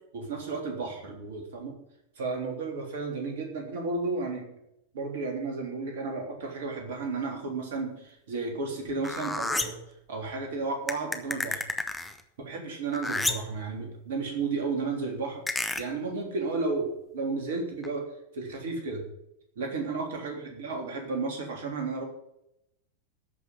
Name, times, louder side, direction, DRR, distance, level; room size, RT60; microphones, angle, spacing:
voice 1, 0.1-1.7 2.2-4.5 4.9-9.8 10.1-11.6 12.4-15.4 15.8-18.0 18.3-19.0 19.6-22.0, right 3 dB, 55° right, 2 dB, 3.4 m, -33 dB
sound 1, 9.0-9.9 10.9-12.2 12.9-13.6 15.5-15.8 17.8-17.9, left 2 dB, 5° left, 1.2 m, -30 dB
13.5 x 5.9 x 9.0 m, 0.82 s
figure-of-eight pair, 90°, 0 cm